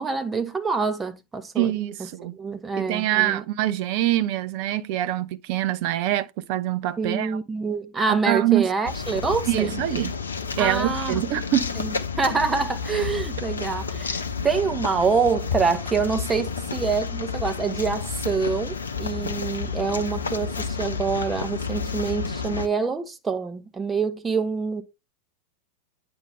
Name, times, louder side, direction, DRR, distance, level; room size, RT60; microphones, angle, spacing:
voice 1, 0.0-1.7 2.0-3.4 7.0-9.8 10.6-11.2 11.8-24.8, right 5 dB, 15° right, 1.0 m, -26 dB
voice 2, 1.6-2.3 2.8-7.4 8.1-8.7 9.5-10.1 10.6-11.7, right 13 dB, 45° right, 0.7 m, -24 dB
sound 1, 8.9-22.7, left 5 dB, 70° left, 0.7 m, -30 dB
9.1 x 5.3 x 3.3 m
figure-of-eight pair, 90°, 0 cm